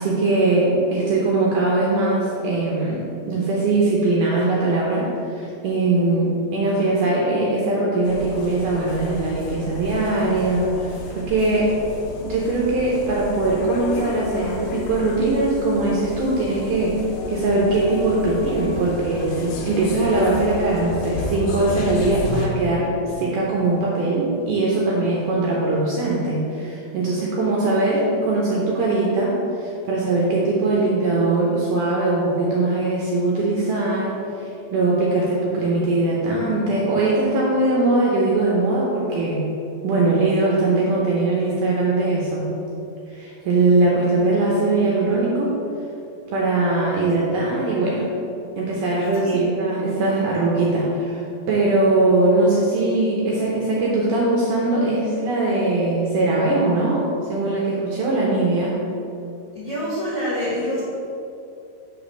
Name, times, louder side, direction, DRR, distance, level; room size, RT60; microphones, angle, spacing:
voice 1, 0.0-11.0 11.3-11.7 12.2-17.0 17.3-39.4 39.8-42.5 43.1-45.5 46.3-48.1 48.6-57.0 57.3-58.8, right 2 dB, 75° right, -4 dB, 2.0 m, -21 dB
sound 1, 8.0-22.5, left 1 dB, 85° left, 3.0 m, -33 dB
voice 2, 59.5-60.8, equal, 65° left, -10 dB, 1.4 m, -26 dB
7.1 x 3.3 x 6.1 m, 2.7 s
omnidirectional pair, 4.6 m